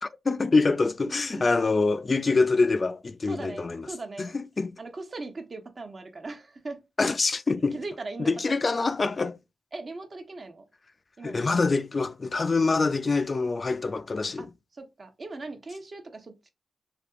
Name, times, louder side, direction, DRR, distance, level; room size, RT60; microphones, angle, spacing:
voice 1, 0.0-3.9 4.2-4.8 7.0-7.8 8.2-9.4 11.2-14.5, left 3 dB, 45° left, 0.3 m, -25 dB
voice 2, 1.0-1.5 3.3-4.3 4.8-6.8 7.7-8.6 9.7-10.6 11.2-11.4 14.4-14.5 14.8-16.5, right 3 dB, 50° right, 0.8 m, -39 dB
3.4 x 2.7 x 2.4 m
cardioid pair, 55°, 0 cm